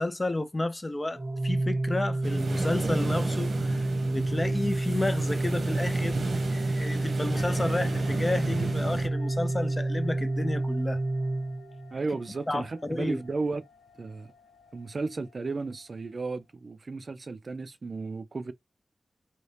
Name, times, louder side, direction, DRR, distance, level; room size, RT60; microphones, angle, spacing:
voice 1, 0.0-11.0 12.5-13.2, left 2 dB, 25° left, 0.5 m, -31 dB
Organ, 1.1-12.0, right 2 dB, 35° right, 1.0 m, -29 dB
sound 1, 2.2-9.1, right 3 dB, 75° right, 0.9 m, -34 dB
sound 2, 7.4-16.4, left 5 dB, 80° left, 0.7 m, -53 dB
voice 2, 11.9-13.6 14.0-14.3 14.7-18.5, right 3 dB, 55° right, 0.4 m, -34 dB
2.8 x 2.7 x 3.3 m
wide cardioid pair, 110°, 0 cm